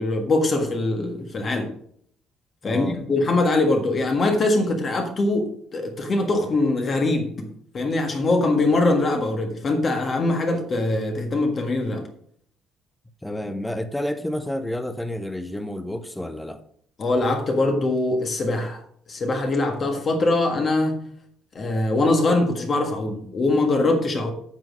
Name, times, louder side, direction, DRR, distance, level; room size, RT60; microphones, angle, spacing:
voice 1, 0.0-1.7 2.6-7.3 7.7-12.1 17.0-18.8 19.1-21.0 21.5-24.3, left 2 dB, 30° left, 1.5 m, -22 dB
voice 2, 2.6-3.0 13.2-16.6, left 1 dB, 5° left, 0.6 m, -30 dB
9.0 x 6.3 x 6.1 m
cardioid pair, 170°, 0 cm